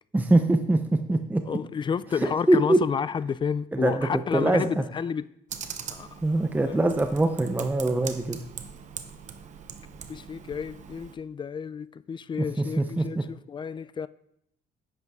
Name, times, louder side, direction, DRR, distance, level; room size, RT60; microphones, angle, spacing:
voice 1, 0.1-0.8 1.1-1.4 2.2-2.8 3.7-4.8 6.2-8.4 12.8-13.2, right 2 dB, 10° right, 0.7 m, -23 dB
voice 2, 1.5-5.3 5.9-6.1 6.6-6.9 10.1-14.1, left 6 dB, 30° left, 0.4 m, -31 dB
Computer keyboard, 5.5-11.2, right 7 dB, 45° right, 0.9 m, -41 dB
10.5 x 8.1 x 3.6 m
cardioid pair, 110°, 17 cm